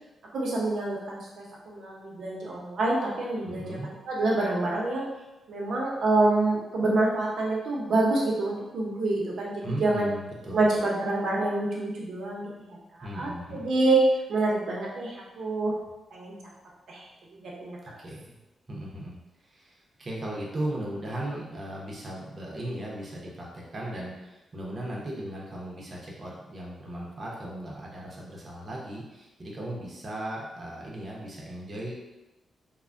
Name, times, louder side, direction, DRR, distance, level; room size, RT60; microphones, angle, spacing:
voice 1, 0.3-3.8 4.1-5.0 5.5-10.1 10.5-12.8 13.1-14.0 14.3-15.8 16.1-16.5 16.9-17.0 17.4-17.8, right 2 dB, 75° right, -3 dB, 0.7 m, -27 dB
voice 2, 3.4-3.9 9.6-10.6 13.0-13.7 18.0-18.4 18.7-31.9, right 1 dB, 40° right, -4 dB, 0.7 m, -37 dB
3.2 x 2.1 x 2.5 m, 1.0 s
cardioid pair, 100°, 0 cm